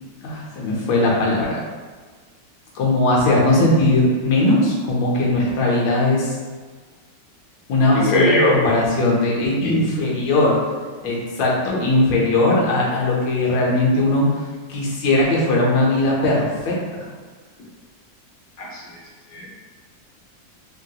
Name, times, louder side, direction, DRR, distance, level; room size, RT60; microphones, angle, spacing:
voice 1, 0.2-1.6 2.7-6.3 7.7-10.6 11.0-14.3 14.7-17.1, left 2 dB, 90° left, -4 dB, 1.5 m, -19 dB
voice 2, 7.9-8.6 9.6-9.8 11.6-11.9 18.6-19.0 19.3-19.5, left 1 dB, 50° left, -5 dB, 0.8 m, -21 dB
3.4 x 2.8 x 2.2 m, 1.5 s
omnidirectional pair, 2.0 m